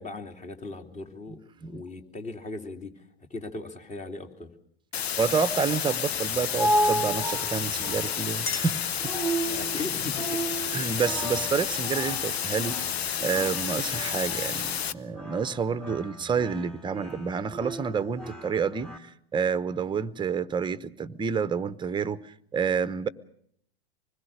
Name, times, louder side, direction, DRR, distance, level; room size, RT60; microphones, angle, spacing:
voice 1, 0.0-1.4 1.7-4.5 9.4-10.5, left 3 dB, 20° left, 3.0 m, -38 dB
sound 1, 4.9-14.9, left 8 dB, 75° left, 1.2 m, -31 dB
voice 2, 5.2-9.1 10.7-12.8 13.2-23.1, right 6 dB, 15° right, 1.0 m, -29 dB
sound 2, 6.1-19.0, right 1 dB, ahead, 2.7 m, -33 dB
Chink clink, 8.4-9.7, left 5 dB, 55° left, 4.1 m, -39 dB
26.0 x 21.0 x 6.5 m
hypercardioid pair, 100°, 31 cm